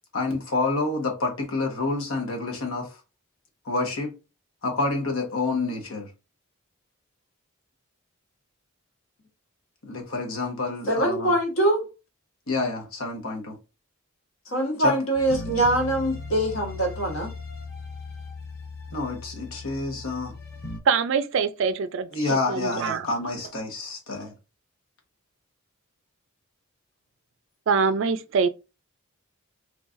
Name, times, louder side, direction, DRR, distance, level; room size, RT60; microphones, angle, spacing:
voice 1, 0.1-3.0 3.6-4.1 4.6-6.1 9.8-11.3 12.5-13.6 14.8-14.9 18.9-20.3 22.1-24.3, left 3 dB, 80° left, 1.2 m, -28 dB
voice 2, 10.9-11.8 14.5-17.3, right 1 dB, 65° left, 1.4 m, -23 dB
sound 1, 15.1-20.8, left 3 dB, 50° left, 0.9 m, -38 dB
voice 3, 20.9-22.1 22.5-23.1 27.7-28.5, right 5 dB, 60° right, 0.4 m, -23 dB
3.8 x 3.2 x 2.5 m
head